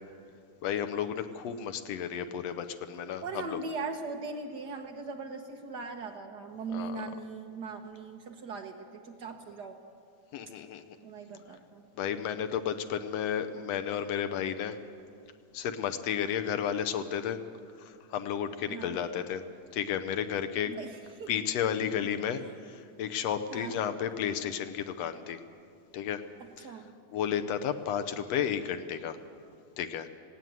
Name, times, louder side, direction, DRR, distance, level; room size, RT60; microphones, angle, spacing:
voice 1, 0.6-3.6 6.7-7.0 10.3-10.8 12.0-14.8 15.5-17.4 17.8-19.4 19.7-20.7 21.3-25.4 25.9-26.2 26.6-26.7 27.1-29.2 29.8-30.1, left 8 dB, 70° left, 9 dB, 1.7 m, -32 dB
voice 2, 3.2-9.8 11.0-11.8 18.7-19.0 20.7-21.3 22.4-22.5 23.5-23.8 26.6-26.9, right 4 dB, 90° right, 3 dB, 0.9 m, -40 dB
18.5 x 17.0 x 9.4 m, 2.4 s
omnidirectional pair, 3.5 m